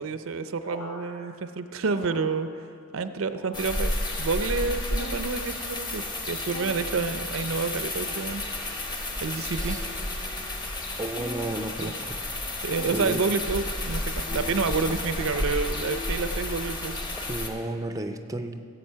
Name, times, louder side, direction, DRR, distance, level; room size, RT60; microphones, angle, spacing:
voice 1, 0.0-2.5 2.9-8.4 9.2-9.8 11.8-11.9 12.6-16.9, right 4 dB, 70° right, 11 dB, 0.5 m, -29 dB
sound 1, 0.6-2.9 3.1-4.0 4.5-5.2 5.8-6.3 7.1-7.5 8.4-8.7, left 1 dB, 75° left, 3.1 m, -47 dB
sound 2, 3.5-17.5, left 1 dB, 20° left, 1.1 m, -32 dB
sound 3, 4.9-16.4, left 2 dB, 40° left, 1.2 m, -46 dB
voice 2, 11.0-12.2 12.9-13.2 17.3-18.6, right 1 dB, 15° right, 7 dB, 0.5 m, -32 dB
15.0 x 8.0 x 5.6 m, 2.3 s
head